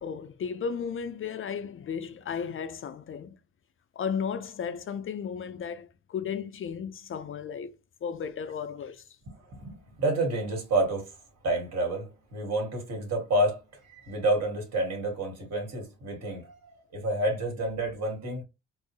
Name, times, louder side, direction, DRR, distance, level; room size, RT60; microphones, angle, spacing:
voice 1, 0.0-3.4 4.0-9.0, left 7 dB, 45° left, 0.5 m, -34 dB
voice 2, 9.3-11.1 11.4-16.5 16.9-18.4, right 1 dB, 55° right, 1.9 m, -29 dB
4.3 x 2.1 x 3.1 m
cardioid pair, 90°, 30 cm